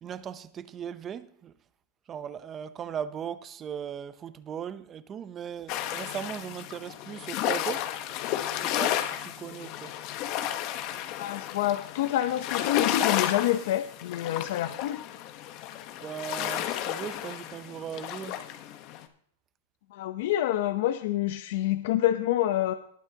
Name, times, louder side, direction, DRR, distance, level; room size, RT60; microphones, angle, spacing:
voice 1, 0.0-1.5 2.1-7.9 8.5-9.9 16.0-18.4, right 8 dB, 20° right, 0.6 m, -38 dB
sound 1, 5.7-19.1, left 11 dB, 40° left, 1.1 m, -32 dB
voice 2, 11.2-15.0 19.9-22.7, left 13 dB, 60° left, 0.8 m, -27 dB
19.5 x 9.0 x 2.9 m
supercardioid pair, 155°, 0 cm